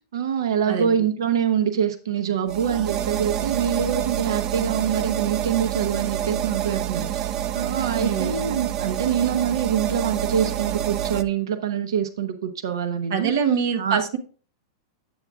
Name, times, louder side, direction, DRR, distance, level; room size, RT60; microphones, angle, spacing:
voice 1, 0.1-13.3 13.8-14.2, right 8 dB, 90° right, 8 dB, 0.8 m, -25 dB
voice 2, 0.7-1.1 7.9-8.3 13.1-14.2, right 7 dB, 55° right, 5 dB, 1.1 m, -24 dB
sound 1, 2.5-11.2, right 11 dB, 20° right, 0.3 m, -27 dB
8.7 x 8.0 x 2.4 m, 0.40 s
supercardioid pair, 170°, 2 cm